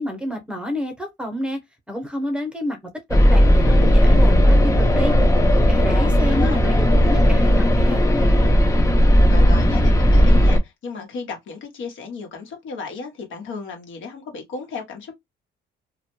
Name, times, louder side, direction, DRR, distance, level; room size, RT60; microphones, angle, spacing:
voice 1, 0.0-1.6 1.9-2.8 3.1-5.1 5.7-8.6, equal, 5° right, 0.9 m, -29 dB
sound 1, 3.1-10.6, equal, 15° left, 0.5 m, -15 dB
voice 2, 5.8-6.6 9.3-15.2, left 4 dB, 75° left, 1.0 m, -34 dB
2.2 x 2.1 x 2.9 m
cardioid pair, 90°, 20 cm